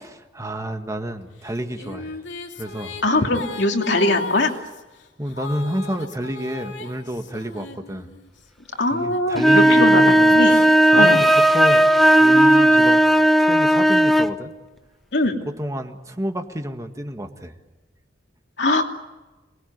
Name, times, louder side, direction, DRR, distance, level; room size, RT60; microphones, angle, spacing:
voice 1, 0.0-2.2 2.6-3.0 5.2-8.1 8.9-10.7 10.9-13.0 13.4-14.5 15.5-17.5, equal, 20° right, 5 dB, 1.7 m, -29 dB
Female singing, 1.4-8.4 9.1-12.8, left 3 dB, 90° left, 2.6 m, -37 dB
voice 2, 3.0-4.5 8.8-10.6 11.0-11.2 15.1-15.4 18.6-18.8, left 2 dB, 70° left, 3 dB, 2.8 m, -21 dB
sound 1, 9.4-14.3, right 1 dB, ahead, 0.9 m, -15 dB
27.5 x 21.0 x 9.5 m, 1.1 s
head